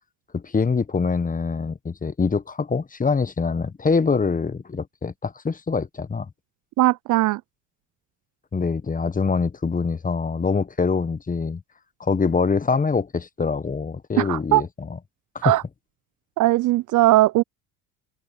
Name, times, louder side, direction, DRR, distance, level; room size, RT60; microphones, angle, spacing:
voice 1, 0.3-6.3 8.5-11.6 12.0-14.7 15.3-15.5, left 5 dB, 20° left, 1.2 m, -24 dB
voice 2, 6.8-7.4 14.2-14.6 15.4-15.6 16.4-17.4, right 17 dB, 50° right, 0.5 m, -19 dB
open air
hypercardioid pair, 75°, 42 cm